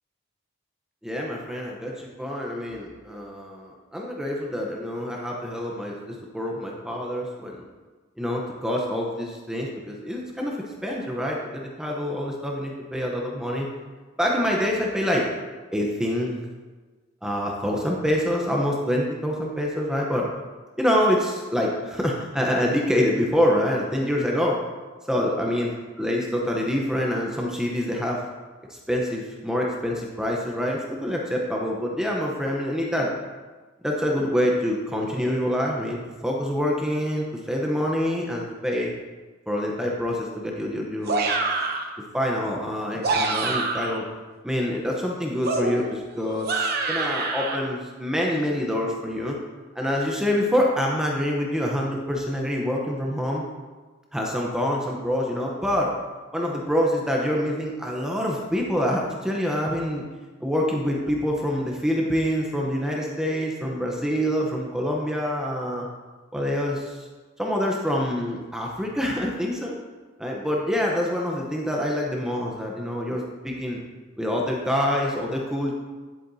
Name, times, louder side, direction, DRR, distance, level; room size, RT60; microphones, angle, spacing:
voice 1, 1.0-7.6 8.2-13.7 14.2-15.3 15.7-16.4 17.2-20.3 20.8-24.6 25.1-25.7 26.0-28.2 28.7-33.1 33.8-38.9 39.5-41.4 42.1-44.1 44.4-49.4 49.7-53.4 54.1-55.9 56.3-60.0 60.4-65.9 66.3-67.1 67.4-69.7 70.2-73.8 74.2-75.7, equal, 5° right, -2 dB, 0.8 m, -26 dB
sound 1, 41.1-41.9 42.8-44.0 45.4-47.6, right 3 dB, 55° right, 0.9 m, -26 dB
10.5 x 8.5 x 2.7 m, 1.3 s
head